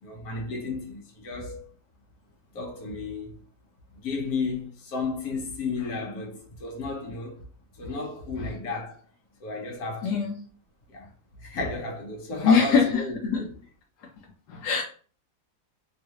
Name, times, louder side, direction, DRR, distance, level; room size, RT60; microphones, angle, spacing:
voice 1, 0.0-1.6 2.5-3.4 3.9-7.4 7.7-9.0 9.4-10.2 10.9-11.1 11.4-13.5, left 3 dB, 65° left, 1.4 m, -33 dB
voice 2, 10.0-10.4 12.4-13.0 13.3-13.4 14.5-14.8, left 5 dB, 85° left, 1.2 m, -21 dB
3.2 x 2.4 x 2.8 m
omnidirectional pair, 1.7 m